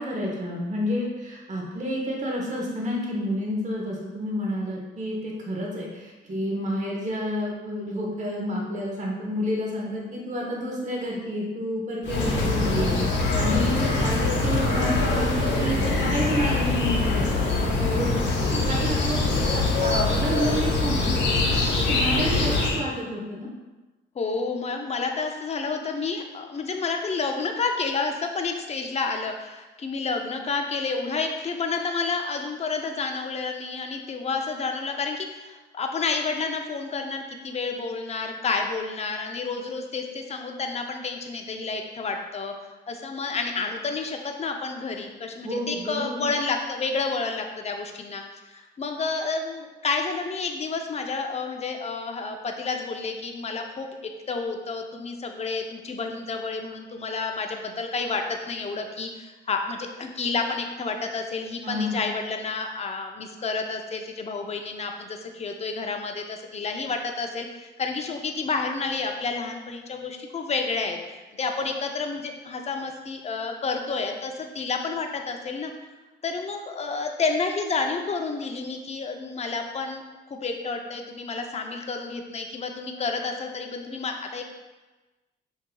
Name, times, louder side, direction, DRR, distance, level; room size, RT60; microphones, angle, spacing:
voice 1, 0.0-12.9 13.3-17.3 17.9-18.1 18.4-21.2 21.9-23.5 45.4-46.2 61.6-62.0, equal, 35° right, -3 dB, 1.0 m, -29 dB
sound 1, 12.0-22.8, left 3 dB, 70° left, 0.9 m, -23 dB
voice 2, 17.7-19.0 24.1-42.5 42.9-75.7 76.2-80.0 80.3-84.6, left 4 dB, 35° left, 4 dB, 0.5 m, -30 dB
6.1 x 2.7 x 2.2 m, 1.2 s
cardioid pair, 90°, 20 cm